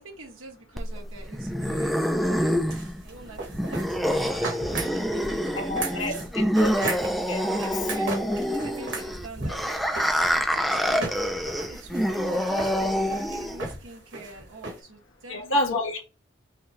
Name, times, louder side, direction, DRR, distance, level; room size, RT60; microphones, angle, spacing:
voice 1, 0.0-2.8 3.0-7.0 7.4-15.8, right 2 dB, 75° right, 1.4 m, -45 dB
sound 1, 0.8-13.8, equal, ahead, 0.4 m, -26 dB
sound 2, 2.7-14.8, right 2 dB, 60° right, 1.4 m, -36 dB
voice 2, 5.5-6.1 6.6-6.7 7.3-7.4 15.3-16.0, left 1 dB, 80° left, 1.3 m, -27 dB
5.6 x 2.3 x 3.1 m
head